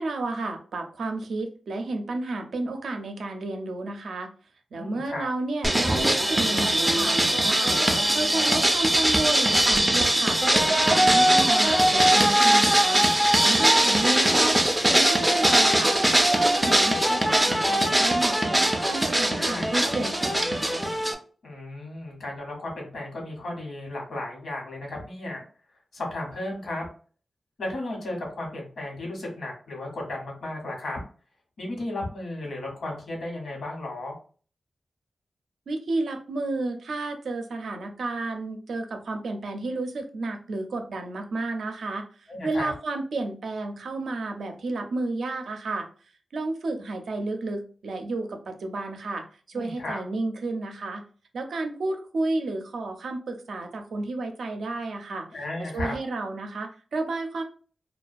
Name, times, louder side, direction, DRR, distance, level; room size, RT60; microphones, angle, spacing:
voice 1, 0.0-4.3 4.7-13.0 13.4-14.6 14.9-16.0 16.3-20.9 35.7-45.9 46.3-51.0 51.3-55.3 55.6-57.4, right 2 dB, 85° right, 4 dB, 0.4 m, -32 dB
voice 2, 4.7-5.3 11.1-11.4 11.6-11.8 19.3-19.9 21.4-25.4 25.9-26.9 27.6-31.0 31.6-34.2 42.3-42.7 49.5-50.0 55.3-55.9, left 1 dB, 75° left, 0 dB, 1.0 m, -34 dB
sound 1, 5.6-21.1, right 1 dB, 10° right, 0.3 m, -21 dB
2.3 x 2.1 x 2.5 m, 0.41 s
wide cardioid pair, 145°, 0 cm